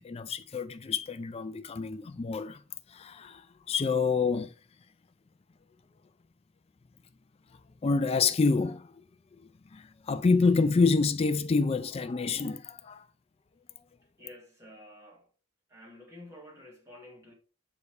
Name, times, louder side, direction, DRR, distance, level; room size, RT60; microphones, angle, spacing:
voice 1, 0.0-2.6 2.9-4.5 7.8-8.9 9.7-13.0, left 4 dB, 30° left, 0.3 m, -27 dB
voice 2, 14.2-15.3 15.7-17.3, left 1 dB, 15° right, 2.0 m, -50 dB
8.2 x 5.3 x 3.3 m
head